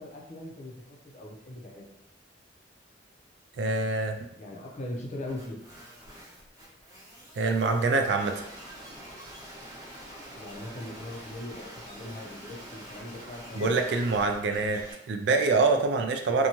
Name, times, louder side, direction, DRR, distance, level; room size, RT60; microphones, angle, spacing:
voice 1, 0.0-1.9 4.4-5.6 10.4-13.8, left 1 dB, 40° left, 0 dB, 0.5 m, -40 dB
voice 2, 3.6-4.3 7.4-8.4 13.5-16.5, right 3 dB, 65° right, 5 dB, 0.3 m, -25 dB
sound 1, 5.3-14.9, equal, 20° right, 0.9 m, -46 dB
2.6 x 2.2 x 2.9 m, 0.79 s
head